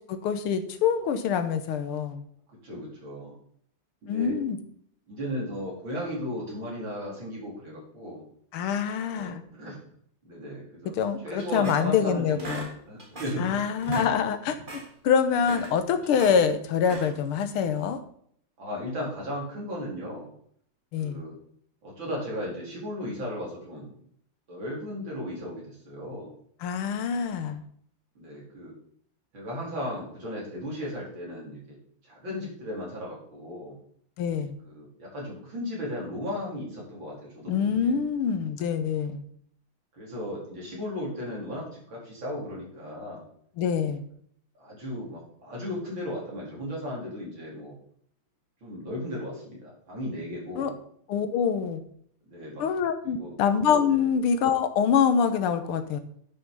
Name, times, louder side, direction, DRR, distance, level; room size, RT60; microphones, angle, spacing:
voice 1, 0.1-2.2 4.1-4.6 8.5-9.4 10.9-12.7 13.4-14.6 15.0-18.0 20.9-21.2 26.6-27.6 34.2-34.6 37.5-39.2 43.6-44.0 50.6-50.7 51.1-51.8 52.6-56.0, left 7 dB, 80° left, 9 dB, 1.9 m, -25 dB
voice 2, 2.6-3.3 4.0-4.4 5.1-8.2 9.0-9.8 10.2-10.9 11.2-12.6 12.9-13.6 18.6-20.3 21.0-21.3 21.8-24.0 24.5-26.3 28.2-28.7 29.3-31.8 32.1-33.7 34.6-38.0 40.0-43.3 44.6-47.8 48.6-50.7 52.3-52.6 53.2-53.3 53.9-54.1, left 1 dB, 60° right, -4 dB, 4.8 m, -36 dB
sound 1, 11.4-12.1 12.4-13.5 13.8-14.2 14.5-14.9 15.3-16.4 16.8-17.3, right 2 dB, 25° right, 1.7 m, -38 dB
10.5 x 6.2 x 5.5 m, 0.64 s
omnidirectional pair, 2.4 m